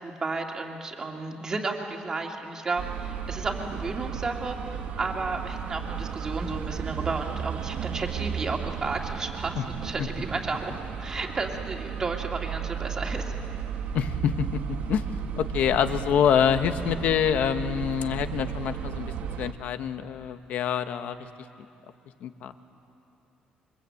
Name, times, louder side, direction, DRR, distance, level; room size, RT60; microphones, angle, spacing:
voice 1, 0.0-13.4, right 3 dB, 20° right, 2 dB, 2.2 m, -33 dB
sound 1, 2.8-19.5, right 7 dB, 60° right, 1.2 m, -34 dB
voice 2, 13.9-14.6 14.9-15.0 15.4-21.2 22.2-22.5, left 8 dB, 60° left, 10 dB, 1.1 m, -26 dB
27.5 x 24.5 x 8.5 m, 2.8 s
cardioid pair, 175°, 3 cm